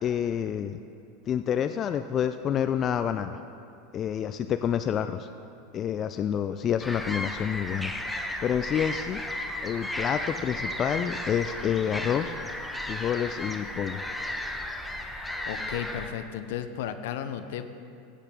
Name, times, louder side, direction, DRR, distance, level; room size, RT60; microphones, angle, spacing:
voice 1, 0.0-0.8 1.3-3.4 3.9-5.3 5.7-7.9 8.4-9.2 9.6-12.4 12.9-14.0, left 9 dB, 35° left, 9 dB, 0.4 m, -28 dB
sound 1, 6.8-16.1, left 1 dB, 5° left, 1.0 m, -34 dB
voice 2, 15.4-17.7, left 9 dB, 70° left, 10 dB, 0.7 m, -34 dB
16.5 x 8.3 x 3.6 m, 2.5 s
hypercardioid pair, 90°, 0 cm